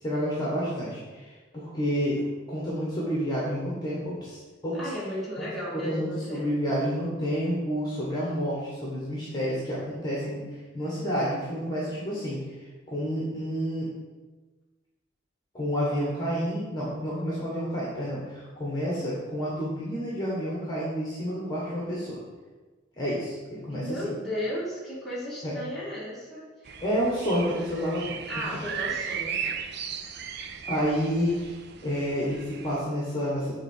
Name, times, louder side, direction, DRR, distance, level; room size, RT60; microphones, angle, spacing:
voice 1, 0.0-2.2 2.5-4.8 5.7-12.4 12.9-13.9 15.5-22.2 23.0-23.8 25.4-25.5 26.8-28.4 30.6-31.5 31.8-33.5, equal, 20° left, -6 dB, 1.5 m, -29 dB
voice 2, 4.7-6.8 23.7-26.7 28.3-29.6, equal, ahead, -8 dB, 2.3 m, -35 dB
sound 1, 26.7-32.8, right 7 dB, 60° right, 0.6 m, -36 dB
7.4 x 3.8 x 5.6 m, 1.3 s
head